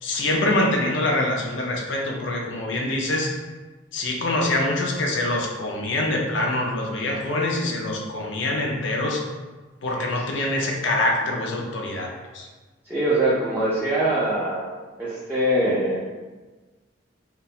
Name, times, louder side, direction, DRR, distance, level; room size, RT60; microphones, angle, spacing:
voice 1, 0.0-3.3 3.9-9.2 9.8-12.5, left 1 dB, 80° left, 0 dB, 0.5 m, -25 dB
voice 2, 12.9-14.7 15.0-16.0, right 1 dB, 10° right, -10 dB, 0.4 m, -23 dB
2.3 x 2.1 x 2.7 m, 1.3 s
head